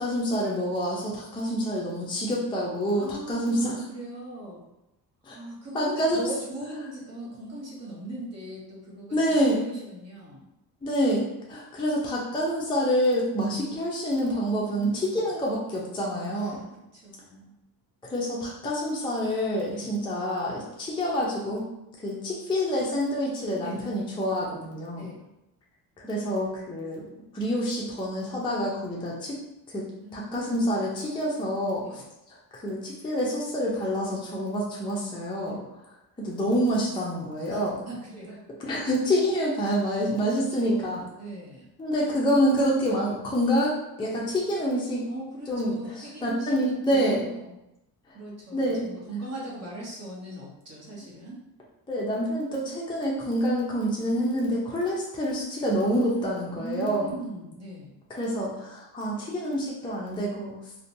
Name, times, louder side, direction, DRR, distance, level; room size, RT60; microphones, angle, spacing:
voice 1, 0.0-3.7 5.2-5.4 5.7-6.3 9.1-9.7 10.8-11.2 11.5-16.6 18.0-21.7 22.0-25.1 26.0-27.0 27.3-29.4 29.7-29.8 30.1-32.0 32.3-35.6 36.2-37.8 38.6-41.0 41.8-45.1 45.5-47.3 48.5-48.9 51.9-57.1 58.1-60.5, equal, 10° left, -4 dB, 0.5 m, -27 dB
voice 2, 3.0-4.6 5.3-10.5 14.7-15.0 16.2-17.6 19.7-19.9 23.6-23.8 24.9-25.2 30.0-30.7 31.8-32.0 35.4-35.7 37.4-38.4 40.1-41.7 45.1-47.6 48.1-51.4 56.0-58.0, right 1 dB, 40° right, -5 dB, 0.9 m, -40 dB
2.8 x 2.2 x 2.6 m, 0.89 s
cardioid pair, 110°, 40 cm